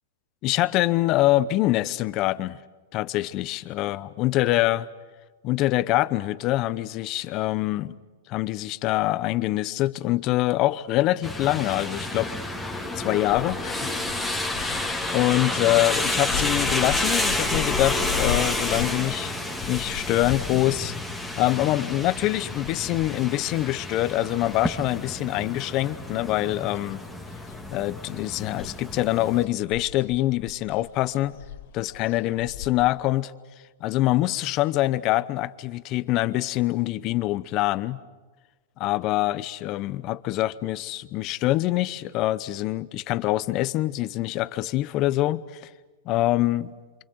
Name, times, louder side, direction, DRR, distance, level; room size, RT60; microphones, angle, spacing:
voice 1, 0.4-2.6 2.9-4.9 5.4-8.0 8.3-12.3 13.0-13.9 14.6-19.3 19.7-20.9 21.4-27.0 27.7-31.4 31.7-33.3 33.8-38.0 38.8-45.7 46.1-46.7, left 16 dB, 35° left, 0.9 m, -25 dB
sound 1, 11.2-29.4, left 1 dB, ahead, 2.4 m, -30 dB
sound 2, 13.3-24.9 25.2-26.5 26.8-32.9, left 9 dB, 60° left, 1.1 m, -37 dB
28.5 x 25.5 x 7.9 m
hypercardioid pair, 145°, 0 cm